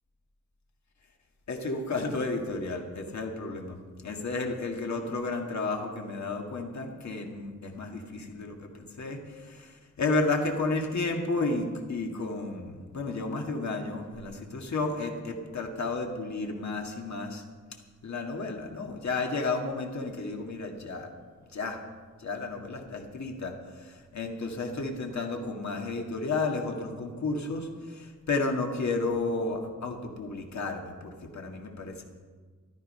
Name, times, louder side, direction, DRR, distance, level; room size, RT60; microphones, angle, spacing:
voice 1, 1.5-17.4 18.0-21.1 21.5-21.8 22.2-32.0, left 3 dB, 65° left, 2 dB, 1.9 m, -32 dB
14.0 x 12.0 x 5.5 m, 1.5 s
wide cardioid pair, 155°, 30 cm